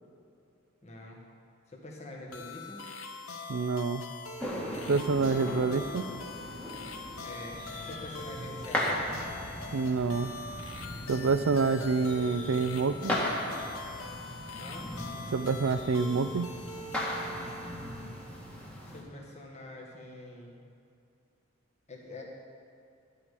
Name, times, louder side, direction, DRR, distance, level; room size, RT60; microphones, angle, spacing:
voice 1, 0.8-1.2 1.7-2.8 7.2-9.0 14.5-14.9 17.0-17.4 18.9-20.5 21.9-22.2, left 2 dB, 30° left, -1 dB, 1.6 m, -45 dB
sound 1, 2.3-18.5, left 2 dB, 75° left, 0.9 m, -43 dB
voice 2, 3.5-4.0 4.9-6.1 9.7-10.3 11.1-13.2 15.3-16.5, right 4 dB, 65° right, 13 dB, 0.4 m, -27 dB
sound 2, 4.4-19.0, left 1 dB, 5° left, 1.5 m, -38 dB
12.0 x 5.0 x 8.3 m, 2.5 s
head